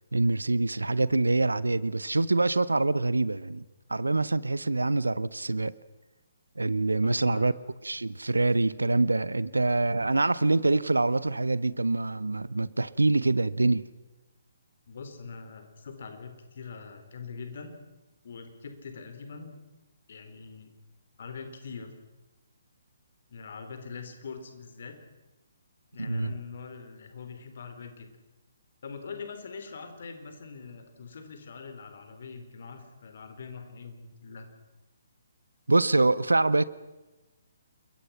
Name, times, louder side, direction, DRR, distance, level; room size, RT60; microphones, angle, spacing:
voice 1, 0.1-3.6 3.9-5.7 6.6-7.5 7.8-13.8 26.0-26.3 35.7-36.6, right 2 dB, 75° right, 0.9 m, -25 dB
voice 2, 7.0-7.5 14.9-17.8 18.2-19.6 20.1-20.7 21.2-21.9 23.3-25.0 25.9-28.1 28.8-34.5, left 5 dB, 50° left, 4.3 m, -43 dB
28.5 x 22.5 x 5.9 m
figure-of-eight pair, 135°, 0 cm